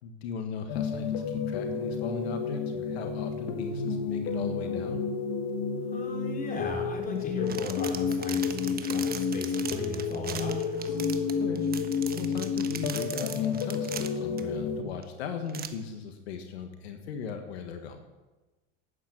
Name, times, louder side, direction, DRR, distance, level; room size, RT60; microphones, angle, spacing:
voice 1, 0.0-5.0 11.4-11.6 12.1-18.0, left 6 dB, 85° left, 5 dB, 1.5 m, -37 dB
sound 1, 0.7-14.8, left 5 dB, 60° left, 1.6 m, -30 dB
voice 2, 5.8-11.0, left 1 dB, 25° left, 0 dB, 3.8 m, -39 dB
sound 2, 7.2-14.4 15.0-15.1 15.5-15.7, right 7 dB, 30° right, 1.2 m, -39 dB
11.5 x 9.0 x 7.6 m, 1.1 s
supercardioid pair, 95°, 31 cm